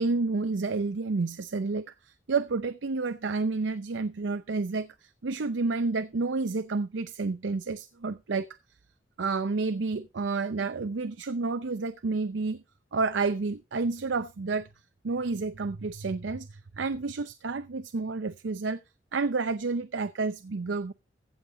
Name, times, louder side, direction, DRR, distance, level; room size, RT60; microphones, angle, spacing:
voice 1, 0.0-8.5 9.2-12.6 12.9-14.7 15.0-18.8 19.1-20.9, right 3 dB, 85° right, 0.6 m, -30 dB
15.5 x 7.3 x 3.8 m
head